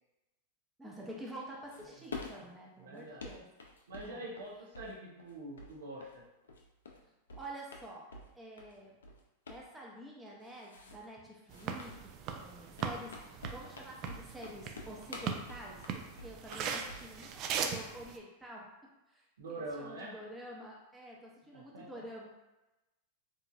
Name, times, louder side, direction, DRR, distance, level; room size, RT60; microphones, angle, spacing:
voice 1, 0.8-3.5 4.0-4.2 7.4-8.1 8.3-8.9 9.5-18.7 19.1-22.3, right 1 dB, 10° right, -4 dB, 0.7 m, -48 dB
sound 1, 1.7-2.4 3.0-4.9 5.2-5.7 6.0-7.0 7.3-8.3 8.6-9.2 9.5-9.7 10.4-11.0 11.5-12.0 12.4-17.3, left 3 dB, 85° left, 0.4 m, -48 dB
voice 2, 2.8-3.3 3.9-6.2 19.4-20.2 21.5-22.0, right 1 dB, 80° right, -4 dB, 0.7 m, -45 dB
sound 2, 11.5-18.2, right 6 dB, 45° right, 0.3 m, -40 dB
2.9 x 2.4 x 2.3 m, 1.0 s
hypercardioid pair, 100°, 0 cm